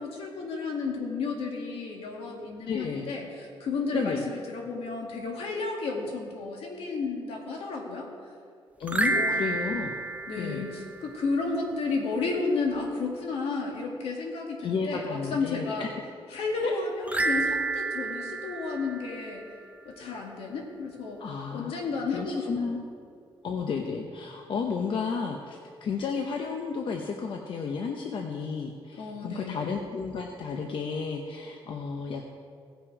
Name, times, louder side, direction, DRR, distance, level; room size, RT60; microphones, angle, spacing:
voice 1, 0.0-8.1 8.9-9.5 10.3-15.9 16.3-19.4 19.9-21.2 21.5-22.8 29.0-29.8, left 4 dB, 80° left, 0 dB, 2.1 m, -32 dB
voice 2, 2.7-3.1 3.9-4.2 8.8-10.0 10.4-10.7 14.6-15.9 16.6-16.8 17.1-17.2 21.2-21.8 22.1-22.8 23.4-32.2, left 5 dB, 60° left, 2 dB, 0.9 m, -32 dB
sound 1, 8.8-11.3 17.0-19.7, right 3 dB, 15° right, 0.6 m, -30 dB
17.5 x 6.2 x 4.9 m, 2.2 s
cardioid pair, 115°, 10 cm